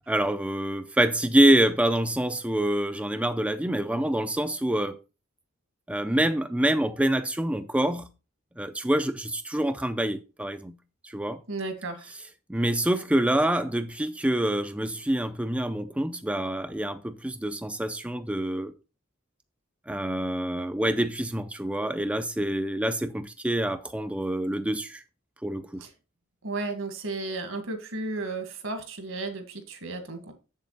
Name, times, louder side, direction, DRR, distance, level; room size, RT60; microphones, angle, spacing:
voice 1, 0.1-5.0 5.9-8.1 8.6-10.8 11.0-11.4 12.5-18.7 19.9-25.0 25.4-25.8, right 1 dB, 5° right, 0.4 m, -26 dB
voice 2, 11.5-12.2 25.8-25.9 26.4-30.3, right 3 dB, 70° right, 1.9 m, -34 dB
7.4 x 7.3 x 4.0 m
head